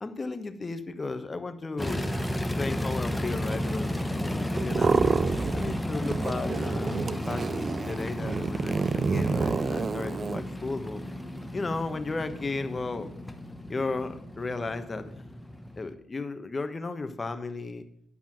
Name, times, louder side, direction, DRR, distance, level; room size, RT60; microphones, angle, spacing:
voice 1, 0.0-2.0 2.3-5.2 5.5-11.0 11.5-13.1 13.7-15.4 15.8-17.8, left 3 dB, 25° left, 8 dB, 1.2 m, -34 dB
sound 1, 1.8-15.9, left 1 dB, 5° left, 1.0 m, -33 dB
sound 2, 4.6-5.8 6.1-10.4, right 5 dB, 40° right, 0.5 m, -28 dB
10.0 x 5.6 x 7.5 m, 0.72 s
cardioid pair, 90°, 0 cm